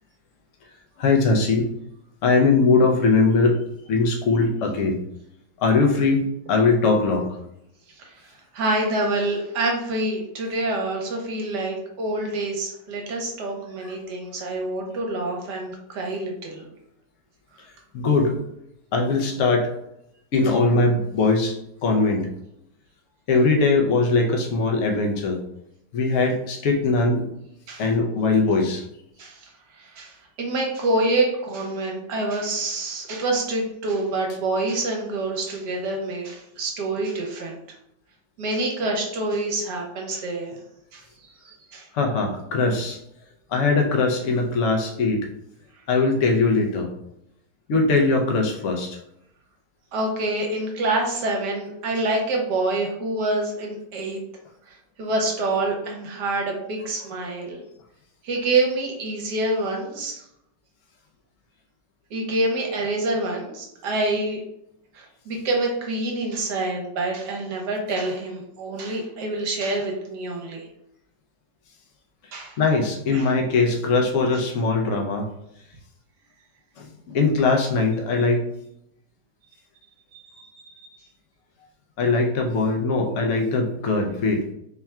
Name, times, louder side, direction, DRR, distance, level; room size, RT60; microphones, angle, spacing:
voice 1, 1.0-1.7 2.2-3.6 3.9-5.0 5.6-7.4 13.8-13.9 17.9-18.4 18.9-19.7 20.3-21.6 21.8-22.3 23.3-25.4 25.9-27.3 27.8-28.8 41.9-43.0 43.5-45.3 45.9-46.9 47.7-49.0 72.6-75.3 76.8-78.4 82.0-84.4, left 3 dB, 65° left, 2 dB, 0.8 m, -21 dB
voice 2, 8.0-16.7 27.7-27.9 29.2-29.5 29.8-37.6 38.4-40.6 40.9-41.9 49.9-54.2 54.7-57.6 58.2-60.2 62.1-64.4 64.9-70.7 72.3-72.6 73.1-73.3 80.1-80.9, right 2 dB, 70° right, 0 dB, 1.4 m, -27 dB
3.6 x 2.3 x 4.2 m, 0.80 s
omnidirectional pair, 1.9 m